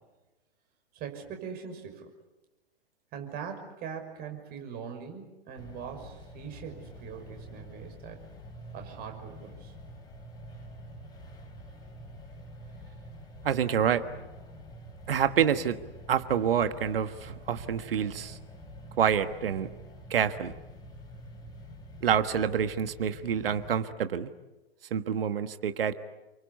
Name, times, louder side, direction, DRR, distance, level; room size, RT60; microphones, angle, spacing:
voice 1, 0.9-2.1 3.1-8.2 8.7-9.7, right 7 dB, 30° right, 4 dB, 6.0 m, -41 dB
sound 1, 5.6-23.7, equal, 15° left, 4.4 m, -47 dB
voice 2, 13.4-14.0 15.1-15.8 16.1-18.4 19.0-19.7 20.1-20.5 22.0-24.3 24.9-25.9, right 8 dB, 65° right, 10 dB, 1.5 m, -27 dB
29.5 x 24.0 x 8.3 m, 1.1 s
figure-of-eight pair, 110°, 31 cm